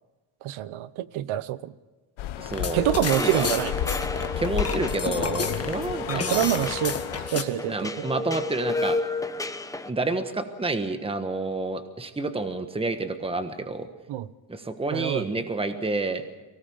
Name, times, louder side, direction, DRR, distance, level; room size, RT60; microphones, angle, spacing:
voice 1, 0.4-1.7 2.7-3.7 6.1-8.1 14.1-14.3 14.9-15.2, right 13 dB, 80° right, 17 dB, 0.9 m, -27 dB
sound 1, 2.2-7.3, left 11 dB, 75° left, 1.1 m, -33 dB
voice 2, 2.4-2.8 3.2-3.5 4.4-6.5 7.6-9.0 9.9-13.9 14.5-16.2, right 3 dB, 10° right, 9 dB, 1.3 m, -29 dB
sound 2, 2.5-7.4, left 5 dB, 30° left, 1.7 m, -31 dB
sound 3, 2.7-9.9, left 2 dB, 5° left, 0.7 m, -32 dB
23.5 x 17.5 x 7.1 m, 1.2 s
cardioid pair, 130°, 48 cm